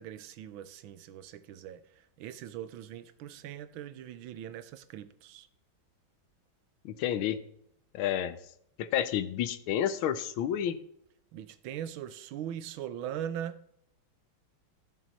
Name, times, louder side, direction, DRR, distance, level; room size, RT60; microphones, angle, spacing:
voice 1, 0.0-5.5 11.3-13.6, right 10 dB, 85° right, 1.5 m, -41 dB
voice 2, 6.8-7.4 7.9-8.4 8.8-10.8, left 10 dB, 85° left, 1.6 m, -30 dB
15.0 x 6.2 x 4.1 m
omnidirectional pair, 2.2 m